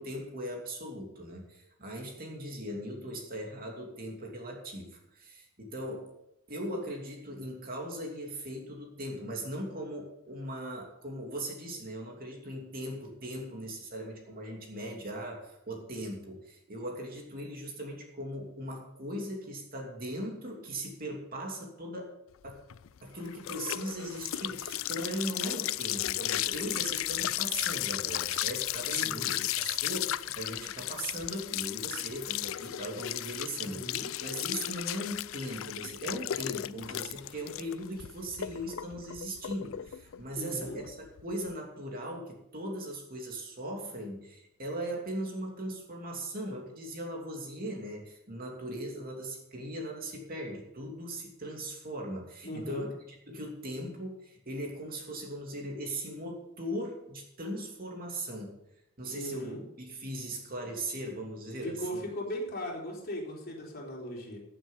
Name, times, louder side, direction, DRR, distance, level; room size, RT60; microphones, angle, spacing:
voice 1, 0.0-6.1 6.5-22.1 22.4-22.6 23.0-58.6 59.0-62.0, right 1 dB, 45° right, 0 dB, 2.9 m, -39 dB
sound 1, 22.4-41.5, left 13 dB, 70° left, 0.4 m, -35 dB
voice 2, 28.9-29.4 33.6-34.1 40.4-40.8 52.4-52.9 59.0-59.6 61.6-64.4, equal, 45° left, -2 dB, 4.0 m, -38 dB
15.5 x 7.8 x 5.6 m, 0.85 s
head